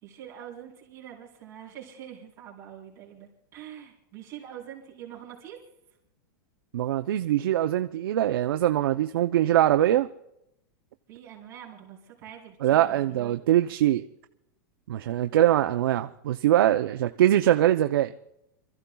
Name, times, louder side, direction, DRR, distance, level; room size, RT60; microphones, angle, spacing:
voice 1, 0.0-5.6 11.1-13.3, right 10 dB, 25° right, -5 dB, 3.8 m, -44 dB
voice 2, 6.7-10.1 12.6-14.0 14.9-18.1, right 12 dB, 85° right, 7 dB, 0.6 m, -22 dB
29.0 x 14.5 x 2.3 m, 0.83 s
supercardioid pair, 170°, 12 cm